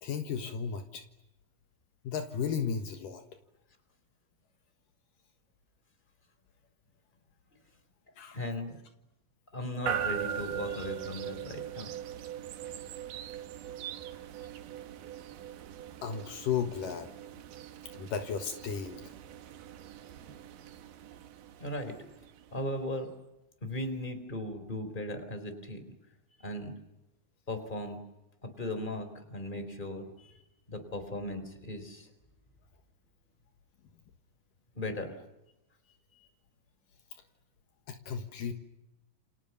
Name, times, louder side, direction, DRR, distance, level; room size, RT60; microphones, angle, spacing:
voice 1, 0.0-1.0 2.0-3.2 8.2-8.4 16.0-17.1 17.9-19.1 37.9-38.5, left 7 dB, 70° left, 6 dB, 3.0 m, -34 dB
voice 2, 8.3-8.8 9.5-11.9 21.6-22.0 22.5-23.1 23.6-25.8 26.4-26.7 27.5-28.0 28.4-30.4 30.7-32.1 34.7-35.2 36.1-36.3, left 1 dB, 15° left, 9 dB, 4.0 m, -37 dB
sound 1, 9.9-22.9, right 9 dB, 70° right, 2.8 m, -41 dB
29.0 x 28.0 x 7.1 m, 0.94 s
omnidirectional pair, 4.1 m